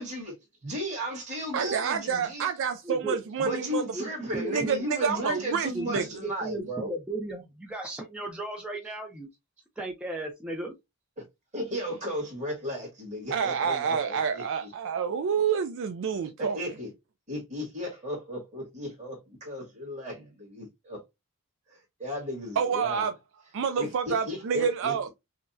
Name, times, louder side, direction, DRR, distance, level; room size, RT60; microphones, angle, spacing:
voice 1, 0.0-0.3 0.6-2.5 3.4-6.9 11.5-14.7 16.4-16.9 17.3-21.0 21.7-23.1 23.8-25.1, equal, 30° right, 1.7 m, -35 dB
voice 2, 1.5-3.8 4.5-6.1 13.3-16.6 22.6-23.1 23.5-25.1, right 6 dB, 60° right, 0.4 m, -28 dB
voice 3, 2.8-3.2 3.9-4.8 5.7-9.3 9.8-10.7, right 2 dB, 5° right, 0.5 m, -35 dB
5.6 x 2.1 x 2.6 m
head